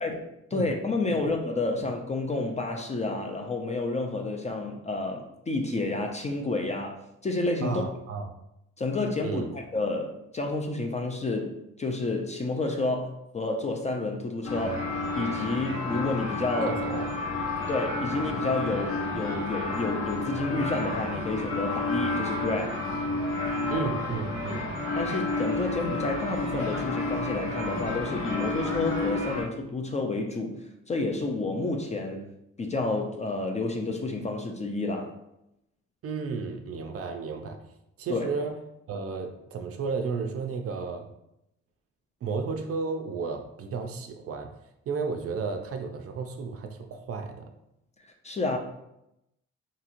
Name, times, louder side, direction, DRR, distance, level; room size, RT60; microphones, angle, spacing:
voice 1, 0.5-7.8 8.8-14.9 15.2-16.8 17.7-22.8 25.0-32.3 32.6-35.2 38.1-38.3 48.2-48.6, left 2 dB, 25° left, 3 dB, 0.3 m, -30 dB
voice 2, 7.6-8.3 9.2-9.5 16.6-17.1 23.7-24.7 36.0-37.6 38.0-38.6 38.9-41.1 42.2-44.6 44.9-47.5, right 5 dB, 50° right, 6 dB, 0.4 m, -33 dB
sound 1, 14.4-29.4, left 2 dB, 90° left, 1.1 m, -31 dB
2.9 x 2.7 x 2.5 m, 0.84 s
cardioid pair, 90°, 30 cm